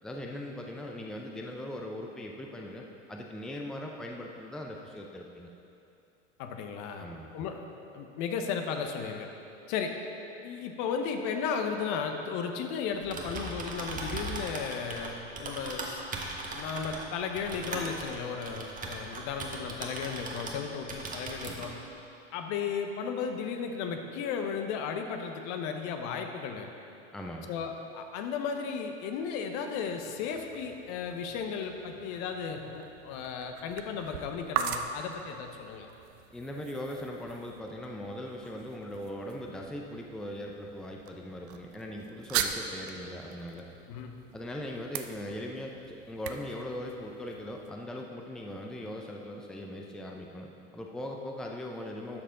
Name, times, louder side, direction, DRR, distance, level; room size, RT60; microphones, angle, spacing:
voice 1, 0.0-5.5 7.0-7.3 27.1-27.5 36.3-43.7 44.3-52.2, left 1 dB, ahead, 0 dB, 0.6 m, -40 dB
voice 2, 6.4-7.1 7.3-7.7 7.9-9.3 9.7-9.9 10.4-21.8 22.3-26.7 27.5-35.9 43.9-44.2, left 6 dB, 50° left, 5 dB, 1.0 m, -35 dB
Typing, 12.9-20.6 20.9-21.7, right 3 dB, 20° right, 1.3 m, -38 dB
sound 1, 29.9-47.7, right 8 dB, 60° right, 0.7 m, -41 dB
12.0 x 6.5 x 3.8 m, 2.8 s
hypercardioid pair, 90°, 37 cm